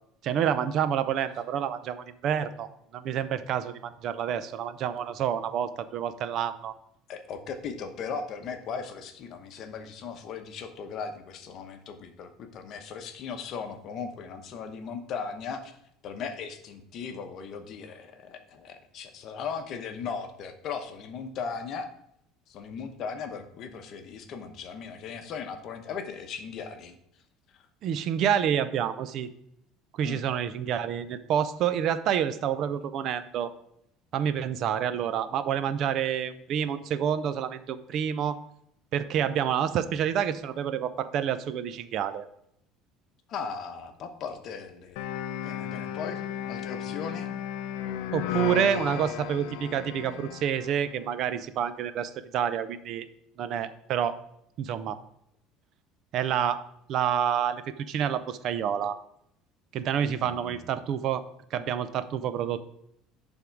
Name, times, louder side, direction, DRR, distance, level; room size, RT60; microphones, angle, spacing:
voice 1, 0.2-2.7 2.9-6.7 27.8-29.3 29.9-33.5 34.1-38.4 38.9-42.2 48.1-53.1 53.4-54.2 54.6-55.0 56.1-56.6 56.9-59.0 59.7-61.2 61.5-62.6, right 9 dB, 50° right, 12 dB, 0.5 m, -28 dB
voice 2, 7.1-15.8 16.0-21.9 22.5-27.0 30.0-30.3 43.3-45.1 45.4-47.3 60.2-60.7, left 6 dB, 45° left, 7 dB, 0.9 m, -38 dB
sound 1, 45.0-50.9, left 11 dB, 80° left, 0.5 m, -34 dB
10.5 x 3.6 x 4.6 m, 0.74 s
cardioid pair, 145°, 0 cm